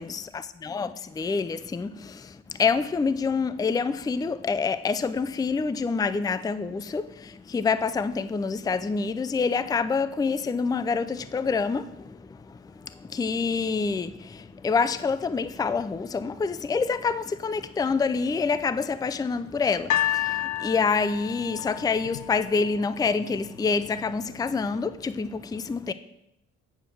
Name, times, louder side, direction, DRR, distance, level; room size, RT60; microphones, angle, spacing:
voice 1, 0.6-25.9, left 5 dB, 15° left, 0.4 m, -27 dB
sound 1, 19.9-23.1 23.8-23.9, left 13 dB, 75° left, 0.6 m, -30 dB
8.8 x 5.0 x 7.6 m
cardioid pair, 90°, 30 cm